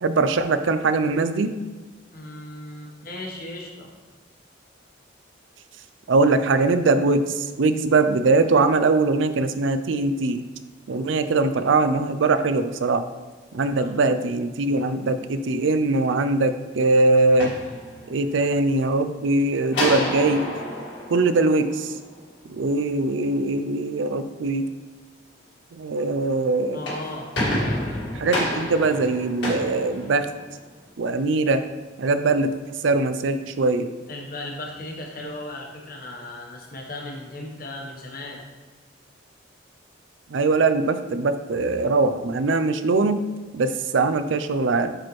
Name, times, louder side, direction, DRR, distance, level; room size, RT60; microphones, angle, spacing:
voice 1, 0.0-1.5 6.1-10.4 10.9-13.0 13.5-17.5 18.1-20.5 21.1-21.9 22.5-24.7 25.7-26.8 28.1-30.3 31.0-31.6 32.0-32.5 32.8-33.9 40.3-43.2 43.5-45.0, right 3 dB, 75° right, 11 dB, 0.5 m, -21 dB
voice 2, 2.1-3.9 13.8-13.9 26.7-27.3 34.1-38.4, left 1 dB, 45° left, 0 dB, 1.2 m, -36 dB
sound 1, 17.4-18.4 19.7-22.2 26.6-30.7, left 1 dB, 65° left, 2.0 m, -29 dB
8.8 x 4.2 x 3.2 m, 1.3 s
head